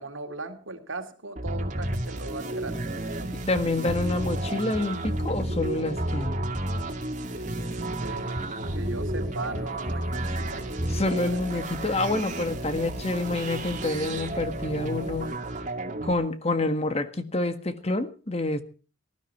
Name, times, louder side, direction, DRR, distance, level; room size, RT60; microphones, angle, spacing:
voice 1, 0.0-3.4 7.3-7.6 8.0-11.3, right 3 dB, 85° right, 5 dB, 2.5 m, -39 dB
sound 1, 1.4-2.0 2.6-5.7 6.0-6.8 7.4-10.5 10.8-11.0, equal, 20° right, 1.3 m, -31 dB
sound 2, 1.4-16.1, right 2 dB, 40° right, 2.3 m, -34 dB
voice 2, 3.3-6.4 10.9-15.3 16.0-18.6, left 2 dB, 30° left, 10 dB, 1.6 m, -27 dB
sound 3, 7.9-15.3, right 1 dB, ahead, 6.2 m, -46 dB
18.5 x 13.0 x 4.6 m, 0.37 s
head